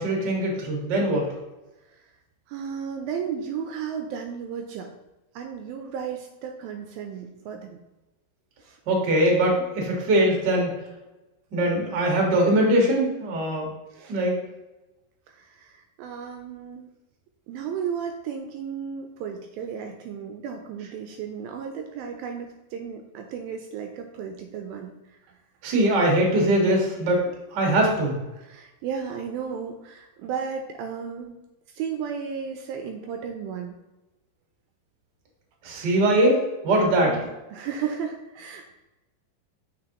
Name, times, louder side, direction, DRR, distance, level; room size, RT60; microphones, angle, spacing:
voice 1, 0.0-1.3 8.9-10.7 11.5-13.7 14.1-14.4 25.6-28.2 35.6-37.2, right 1 dB, 45° right, -1 dB, 1.5 m, -22 dB
voice 2, 2.5-4.9 5.4-7.8 8.6-8.8 13.9-14.2 15.3-16.9 17.5-24.9 25.3-25.4 28.4-31.4 31.7-33.8 37.0-38.8, right 7 dB, 80° right, 4 dB, 2.3 m, -34 dB
7.6 x 5.4 x 3.0 m, 1.0 s
omnidirectional pair, 4.5 m